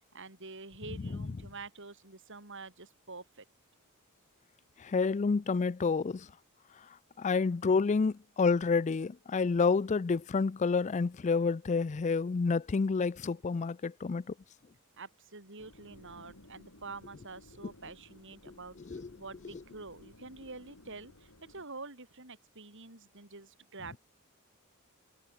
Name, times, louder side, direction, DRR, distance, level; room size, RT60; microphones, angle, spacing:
voice 1, 0.1-3.4 15.0-24.0, right 3 dB, 55° right, 5.6 m, -47 dB
voice 2, 4.8-6.3 7.2-14.2 18.5-18.6 18.9-19.0, left 4 dB, 30° left, 0.4 m, -29 dB
sound 1, 15.6-21.6, left 1 dB, 80° left, 3.6 m, -57 dB
head